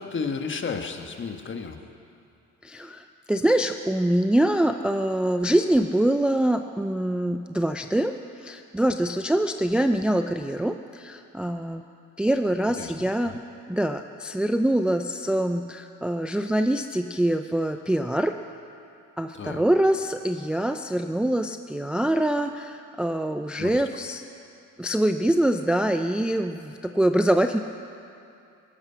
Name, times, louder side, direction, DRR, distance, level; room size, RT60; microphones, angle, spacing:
voice 1, 0.0-1.8 12.8-13.4 19.3-19.6 23.5-23.8, left 5 dB, 35° left, 6 dB, 1.4 m, -33 dB
voice 2, 2.6-8.2 8.4-11.8 12.2-13.4 13.7-18.4 19.2-24.2 24.8-27.6, right 1 dB, 5° right, 7 dB, 0.4 m, -24 dB
17.0 x 14.0 x 5.7 m, 2.6 s
cardioid pair, 95°, 33 cm